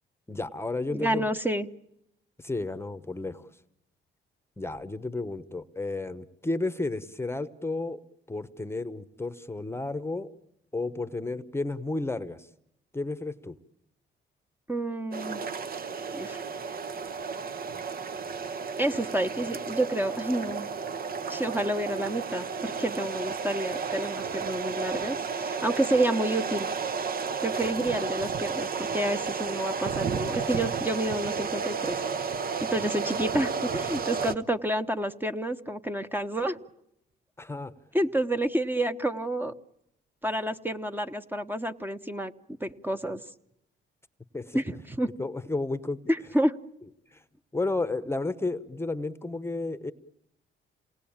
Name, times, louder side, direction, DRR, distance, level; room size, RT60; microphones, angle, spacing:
voice 1, 0.3-1.2 2.4-3.5 4.6-8.0 8.3-10.3 10.7-12.5 12.9-13.6 37.4-37.7 44.3-44.6 45.2-46.0 47.1-47.2 47.5-49.9, left 2 dB, 10° left, 13 dB, 1.0 m, -32 dB
voice 2, 0.9-1.7 14.7-15.4 16.1-16.4 18.8-20.7 21.3-26.7 27.4-32.0 32.7-36.6 37.9-39.5 40.2-42.3 42.6-43.2 44.5-45.1 46.1-46.5, right 1 dB, 10° right, 9 dB, 1.1 m, -29 dB
sound 1, 15.1-34.3, right 5 dB, 50° right, 1.1 m, -32 dB
28.0 x 19.5 x 8.8 m, 0.80 s
cardioid pair, 90°, 20 cm